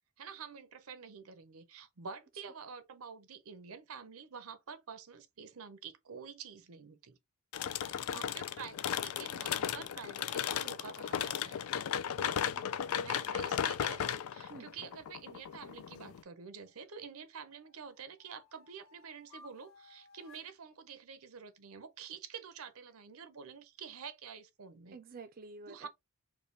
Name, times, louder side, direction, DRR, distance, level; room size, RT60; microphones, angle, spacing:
voice 1, 0.2-7.2 8.1-11.6 13.0-25.0 25.7-25.9, right 6 dB, 80° right, 0.7 m, -48 dB
sound 1, 7.5-16.2, left 9 dB, 90° left, 0.4 m, -35 dB
voice 2, 7.6-8.2 12.3-13.0 14.5-14.7 24.9-25.9, right 4 dB, 45° right, 0.4 m, -52 dB
sound 2, 16.3-16.8 17.3-20.5, left 4 dB, 45° left, 1.6 m, -64 dB
4.7 x 2.2 x 3.3 m
head